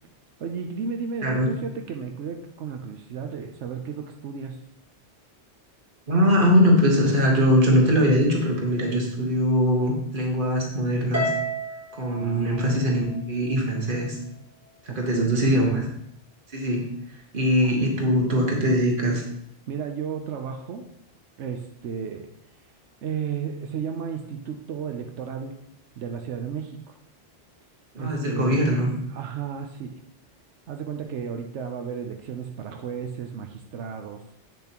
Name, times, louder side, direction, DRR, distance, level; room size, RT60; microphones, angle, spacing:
voice 1, 0.4-4.7 12.2-12.9 14.9-15.3 17.6-17.7 19.7-20.9 21.4-22.2 23.0-25.6 26.0-27.0 28.0-28.7 29.1-30.0 30.7-34.2, right 6 dB, 90° right, 4 dB, 1.0 m, -33 dB
voice 2, 6.1-11.3 12.0-14.2 14.9-15.9 16.5-16.9 17.3-19.2 27.9-28.9, equal, 50° right, 0 dB, 1.6 m, -21 dB
Harp, 11.1-13.6, right 1 dB, 15° right, 1.2 m, -31 dB
8.3 x 6.9 x 3.0 m, 0.74 s
omnidirectional pair, 1.2 m